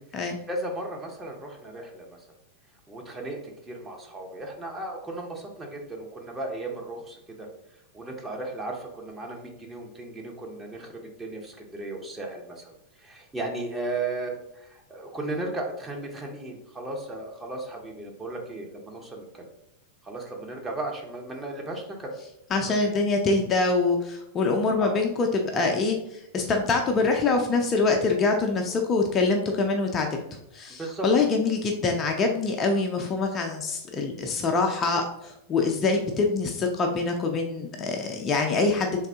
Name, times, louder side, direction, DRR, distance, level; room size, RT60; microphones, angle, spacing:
voice 1, 0.5-2.2 2.9-7.5 7.9-10.9 11.2-12.7 13.0-19.5 20.0-22.1 22.6-22.7 24.8-25.0 30.8-31.1, right 2 dB, 15° right, 0 dB, 0.8 m, -35 dB
voice 2, 22.5-30.1 30.5-38.9, left 3 dB, 25° left, 2 dB, 0.4 m, -25 dB
3.6 x 2.7 x 3.4 m, 0.84 s
figure-of-eight pair, 90°, 0 cm